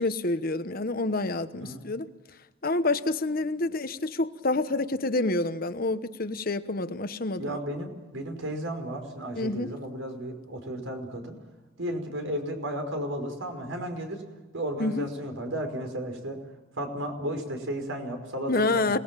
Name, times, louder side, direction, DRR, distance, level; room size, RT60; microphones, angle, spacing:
voice 1, 0.0-2.1 2.6-7.6 9.4-9.7 14.8-15.1 18.5-19.0, left 2 dB, 45° left, 11 dB, 1.1 m, -28 dB
voice 2, 7.4-11.4 11.8-14.2 14.5-16.4 16.8-19.0, right 1 dB, 85° right, 5 dB, 5.2 m, -34 dB
28.0 x 19.5 x 7.5 m, 1.1 s
head